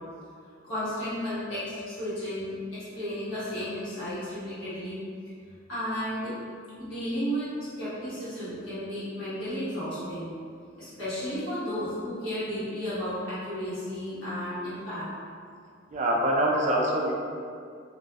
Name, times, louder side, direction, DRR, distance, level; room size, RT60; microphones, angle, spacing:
voice 1, 0.6-5.0 5.7-6.3 6.8-10.3 10.8-15.1, equal, 80° left, -12 dB, 1.2 m, -33 dB
voice 2, 15.9-17.1, right 1 dB, 40° right, -2 dB, 0.3 m, -24 dB
2.5 x 2.3 x 2.3 m, 2.3 s
head